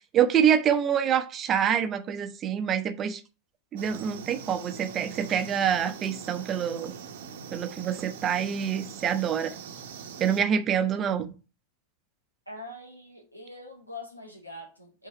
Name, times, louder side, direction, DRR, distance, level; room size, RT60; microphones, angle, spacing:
voice 1, 0.1-3.2 3.7-6.9 7.5-9.5 10.2-11.3, right 8 dB, 30° right, 9 dB, 0.8 m, -26 dB
sound 1, 3.8-10.4, right 7 dB, 55° right, 0.9 m, -42 dB
voice 2, 12.5-15.1, left 2 dB, 90° left, 1 dB, 1.9 m, -43 dB
5.6 x 3.9 x 5.6 m, 0.33 s
figure-of-eight pair, 90°, 0 cm